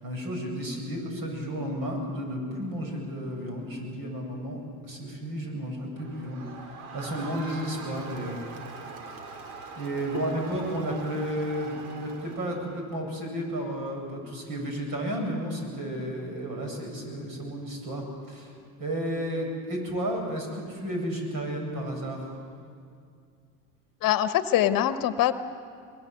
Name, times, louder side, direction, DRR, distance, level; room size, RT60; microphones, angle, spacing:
voice 1, 0.0-8.3 9.8-18.5 18.8-22.3, equal, 50° right, 2 dB, 7.9 m, -32 dB
Crowd, 6.0-12.8, right 4 dB, 75° right, 2.8 m, -42 dB
voice 2, 24.0-25.3, left 12 dB, 50° left, 12 dB, 1.2 m, -23 dB
23.5 x 21.0 x 7.9 m, 2.3 s
hypercardioid pair, 75°, 43 cm